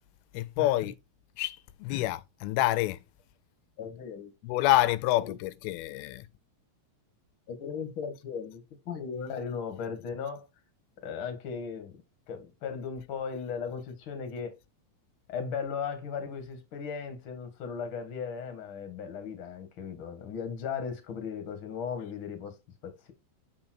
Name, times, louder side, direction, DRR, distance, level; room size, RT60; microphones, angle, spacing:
voice 1, 0.3-1.0 1.4-3.0 4.4-6.3, left 16 dB, 90° left, 2.5 m, -27 dB
voice 2, 3.8-4.3 5.2-5.4 7.5-10.5 11.0-12.0 12.3-14.6 15.3-22.6 22.8-23.1, left 6 dB, 45° left, 1.9 m, -37 dB
7.1 x 5.1 x 4.4 m
omnidirectional pair, 4.3 m